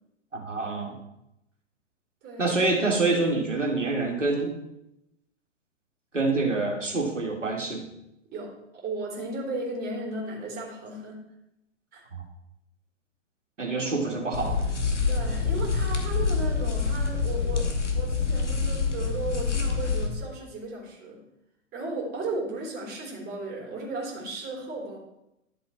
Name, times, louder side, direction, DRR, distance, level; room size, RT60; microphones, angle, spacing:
voice 1, 0.3-1.0 2.4-4.5 6.1-7.9 13.6-14.6, right 3 dB, 80° right, 0 dB, 2.6 m, -26 dB
voice 2, 2.2-2.6 8.3-11.2 11.9-12.0 13.6-14.1 15.1-17.7 18.0-21.2 21.7-25.0, right 2 dB, 25° right, -1 dB, 3.6 m, -35 dB
sound 1, 14.3-20.1, left 5 dB, 70° left, 2.1 m, -26 dB
12.0 x 7.1 x 4.5 m, 0.86 s
figure-of-eight pair, 105°, 36 cm